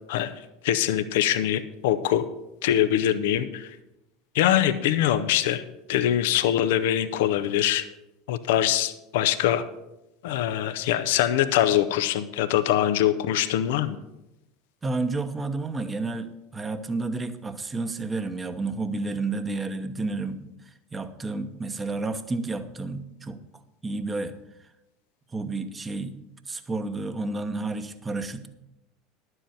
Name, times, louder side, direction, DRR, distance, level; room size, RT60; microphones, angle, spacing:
voice 1, 0.6-2.3 2.6-3.8 4.3-5.6 5.9-7.9 8.3-9.6 10.2-14.0, left 11 dB, 65° left, 11 dB, 0.7 m, -23 dB
voice 2, 14.8-23.4 23.8-24.4 25.3-26.2 26.5-28.5, right 3 dB, 20° right, 9 dB, 1.0 m, -31 dB
11.0 x 7.9 x 5.9 m, 0.90 s
hypercardioid pair, 75°, 0 cm